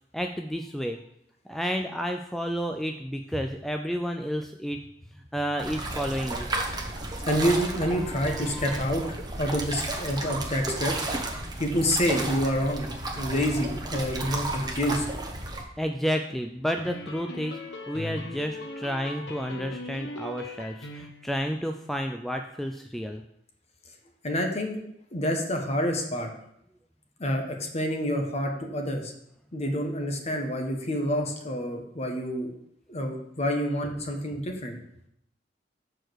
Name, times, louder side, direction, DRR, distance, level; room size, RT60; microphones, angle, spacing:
voice 1, 0.1-1.0 1.5-4.8 5.3-6.5 8.1-8.8 15.8-17.6 17.9-23.2, equal, ahead, 4 dB, 0.3 m, -31 dB
sound 1, 5.6-15.6, right 2 dB, 25° right, 1.0 m, -33 dB
voice 2, 7.3-9.0 9.4-10.9 11.6-12.9 13.1-15.0 24.2-24.8 25.1-26.3 27.2-29.1 29.5-32.6 32.9-34.8, equal, 40° left, 3 dB, 1.2 m, -28 dB
sound 2, 16.8-21.4, left 2 dB, 85° left, 0.9 m, -39 dB
6.5 x 4.7 x 6.3 m, 0.76 s
head